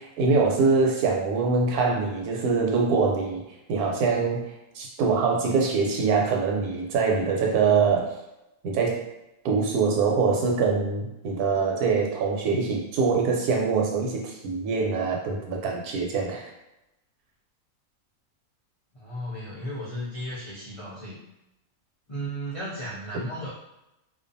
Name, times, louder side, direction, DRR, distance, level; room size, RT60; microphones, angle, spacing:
voice 1, 0.0-3.4 3.7-4.4 4.8-8.1 8.6-9.1 9.4-16.5, right 4 dB, 90° right, 0 dB, 1.1 m, -24 dB
voice 2, 18.9-21.2 22.1-23.5, equal, 60° left, -10 dB, 0.3 m, -35 dB
2.5 x 2.2 x 2.5 m, 0.90 s
omnidirectional pair, 1.6 m